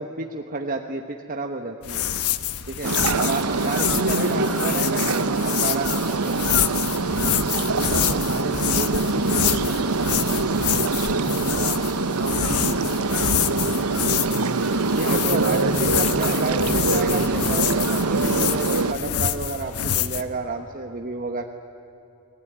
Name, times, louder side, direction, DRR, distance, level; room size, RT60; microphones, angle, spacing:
voice 1, 0.0-2.1 2.7-6.5 11.2-11.8 12.4-12.5 14.9-21.4, right 3 dB, 40° right, 4 dB, 1.1 m, -31 dB
sound 1, 1.8-20.2, left 10 dB, 85° left, 1.1 m, -27 dB
sound 2, 2.8-18.9, right 3 dB, 90° right, 1.0 m, -24 dB
voice 2, 3.8-5.5 7.6-11.7 12.1-14.6 15.0-17.2, right 1 dB, 60° right, 5 dB, 2.4 m, -30 dB
29.0 x 21.0 x 9.4 m, 2.9 s
head